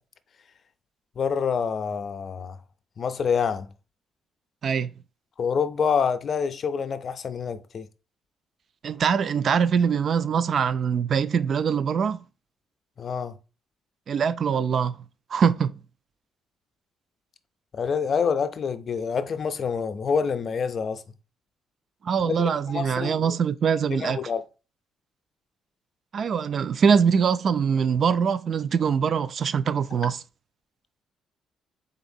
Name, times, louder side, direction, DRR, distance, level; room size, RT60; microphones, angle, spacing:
voice 1, 1.2-2.6 3.0-3.7 5.4-7.9 13.0-13.3 17.7-21.0 22.2-23.4 23.9-24.4, left 6 dB, 50° left, 0.5 m, -27 dB
voice 2, 8.8-12.2 14.1-15.0 15.3-15.8 22.0-24.3 26.1-30.2, right 6 dB, 55° right, 0.3 m, -23 dB
4.0 x 3.3 x 2.6 m
cardioid pair, 90°, 0 cm